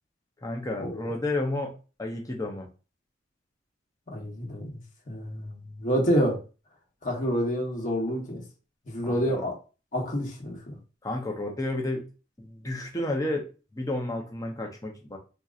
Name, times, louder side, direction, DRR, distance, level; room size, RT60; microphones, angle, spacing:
voice 1, 0.4-2.7 9.0-9.4 11.0-12.1 12.4-15.2, left 2 dB, 20° left, 1 dB, 0.7 m, -31 dB
voice 2, 4.1-4.8 5.1-6.4 7.0-8.4 8.9-9.6 9.9-10.8, equal, 45° left, 0 dB, 1.1 m, -28 dB
3.7 x 2.8 x 2.4 m, 0.33 s
head